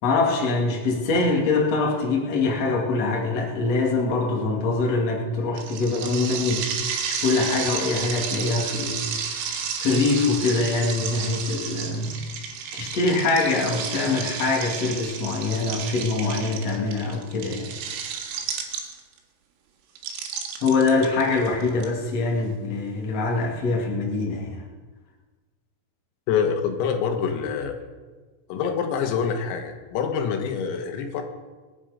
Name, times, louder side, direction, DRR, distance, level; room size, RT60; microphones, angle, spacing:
voice 1, 0.0-6.6 7.1-12.2 12.7-17.7 20.6-24.6, left 3 dB, 40° left, -1 dB, 2.8 m, -24 dB
sound 1, 5.6-19.2 20.0-21.8, right 7 dB, 85° right, 4.3 m, -32 dB
voice 2, 26.3-27.8 28.5-31.2, left 6 dB, 90° left, 5 dB, 4.2 m, -26 dB
25.5 x 9.8 x 5.1 m, 1.3 s
omnidirectional pair, 5.9 m